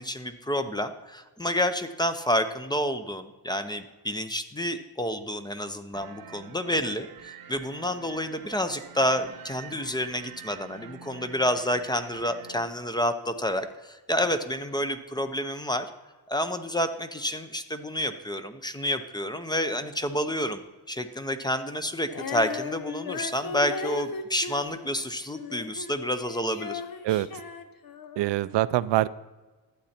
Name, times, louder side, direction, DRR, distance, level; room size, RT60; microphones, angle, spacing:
voice 1, 0.0-15.9 16.3-20.6 20.9-26.8, equal, 10° left, 10 dB, 0.6 m, -29 dB
sound 1, 5.9-12.6, right 7 dB, 55° right, 1.0 m, -47 dB
Female singing, 22.1-26.0 26.2-28.3, left 5 dB, 55° left, 0.9 m, -37 dB
voice 2, 27.0-27.4 28.2-29.1, right 15 dB, 80° right, 16 dB, 0.5 m, -24 dB
11.5 x 8.3 x 4.3 m, 1.2 s
cardioid pair, 110°, 42 cm